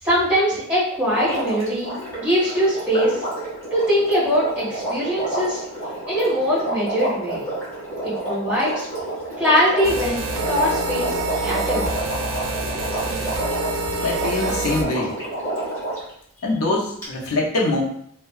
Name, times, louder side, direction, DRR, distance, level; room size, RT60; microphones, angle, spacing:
voice 1, 0.0-1.9 2.2-3.2 3.7-5.6 6.1-7.4 8.0-8.9 9.4-11.9, equal, 5° right, -10 dB, 1.4 m, -22 dB
Water, 1.1-16.1 17.0-17.1, right 1 dB, 15° left, 1.4 m, -29 dB
sound 1, 9.8-14.8, right 2 dB, 70° right, 0.4 m, -27 dB
voice 2, 14.0-15.2 16.4-17.8, left 2 dB, 80° left, -2 dB, 0.6 m, -23 dB
2.7 x 2.1 x 2.3 m, 0.69 s
head